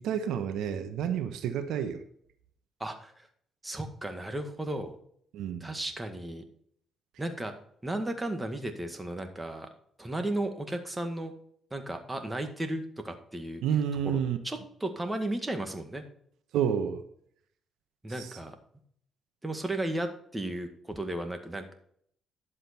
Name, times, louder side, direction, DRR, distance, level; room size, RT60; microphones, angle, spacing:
voice 1, 0.0-2.0 5.3-5.7 13.6-14.4 16.5-17.0 18.1-18.3, right 8 dB, 85° right, 8 dB, 1.1 m, -30 dB
voice 2, 2.8-3.3 3.6-4.9 5.6-6.4 7.2-7.5 7.8-9.7 10.0-11.3 11.7-13.6 14.0-14.2 14.4-16.0 18.0-18.6 19.4-21.7, right 1 dB, 15° right, 5 dB, 1.9 m, -34 dB
11.0 x 7.6 x 4.3 m, 0.65 s
cardioid pair, 90°, 0 cm